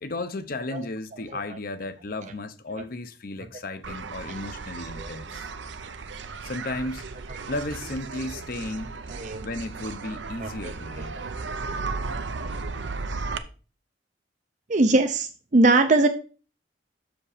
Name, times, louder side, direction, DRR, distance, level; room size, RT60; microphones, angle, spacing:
voice 1, 0.0-5.5 6.4-7.1 7.5-8.9 9.4-11.2, left 2 dB, 50° left, 0.7 m, -34 dB
sound 1, 3.8-13.4, right 4 dB, 75° right, 0.7 m, -35 dB
voice 2, 9.1-9.5 10.4-10.7 13.1-13.3 14.7-16.1, right 2 dB, 40° right, 0.6 m, -22 dB
7.0 x 5.0 x 4.9 m
head